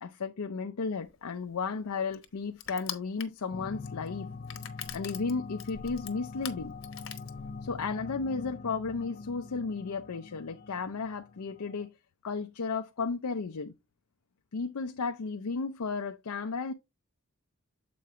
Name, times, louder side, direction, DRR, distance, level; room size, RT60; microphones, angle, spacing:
voice 1, 0.0-4.3 4.9-6.8 7.6-11.9 12.2-13.7 14.5-16.7, left 4 dB, 85° left, 0.6 m, -34 dB
Crushing, 1.1-7.9, left 9 dB, 60° left, 1.0 m, -44 dB
sound 1, 3.5-11.9, left 4 dB, 40° left, 0.3 m, -44 dB
7.7 x 5.2 x 3.1 m
head